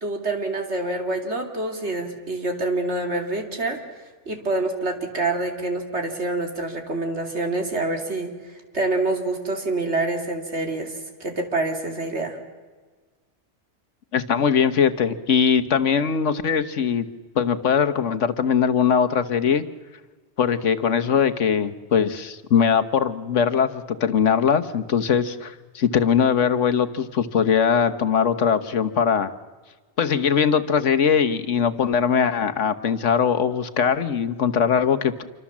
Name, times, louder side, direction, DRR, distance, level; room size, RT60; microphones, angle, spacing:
voice 1, 0.0-3.8 4.3-8.3 8.7-10.9 11.2-12.4, right 2 dB, 65° right, 4 dB, 3.2 m, -26 dB
voice 2, 14.1-17.0 17.3-19.6 20.4-29.3 30.0-35.2, left 7 dB, 80° left, 9 dB, 1.5 m, -21 dB
27.5 x 24.5 x 7.4 m, 1.4 s
omnidirectional pair, 1.2 m